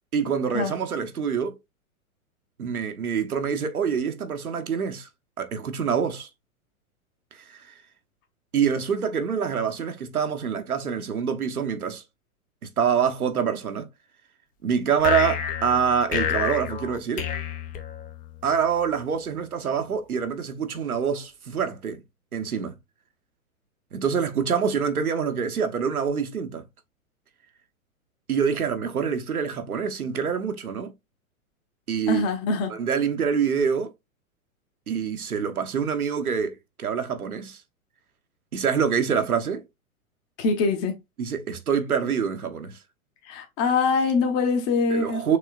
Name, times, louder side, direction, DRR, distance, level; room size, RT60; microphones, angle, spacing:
voice 1, 0.1-1.6 2.6-5.1 5.4-6.3 7.5-7.7 8.5-12.0 12.6-13.9 14.6-17.3 18.4-22.0 22.3-22.8 23.9-26.6 28.3-30.9 31.9-32.2 32.7-33.9 34.9-37.6 38.5-39.6 41.2-42.8 44.9-45.4, right 7 dB, 85° right, 1.1 m, -26 dB
sound 1, 15.0-18.4, left 9 dB, 20° left, 0.6 m, -29 dB
voice 2, 32.1-32.7 40.4-40.9 43.2-45.2, left 4 dB, 35° left, 1.2 m, -23 dB
6.4 x 3.1 x 2.4 m
figure-of-eight pair, 110°, 43 cm